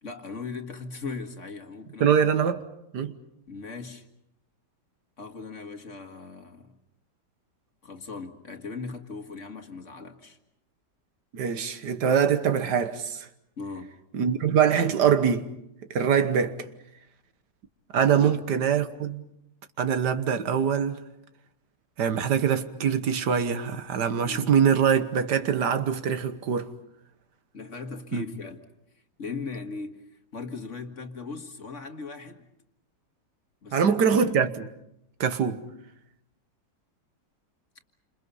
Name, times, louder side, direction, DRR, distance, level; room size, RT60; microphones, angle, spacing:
voice 1, 0.0-2.2 3.5-4.1 5.2-6.8 7.8-10.4 13.6-14.0 18.1-18.4 24.2-24.5 27.5-28.6 28.9-32.5 33.6-34.0, left 4 dB, 45° left, 2.0 m, -39 dB
voice 2, 2.0-2.6 2.9-3.2 11.3-13.3 14.1-15.5 15.9-16.7 17.9-19.2 19.8-21.0 22.0-26.7 28.1-28.2 33.7-34.7 35.2-35.6, right 7 dB, 75° right, 1.8 m, -23 dB
29.0 x 27.0 x 5.5 m
omnidirectional pair, 1.8 m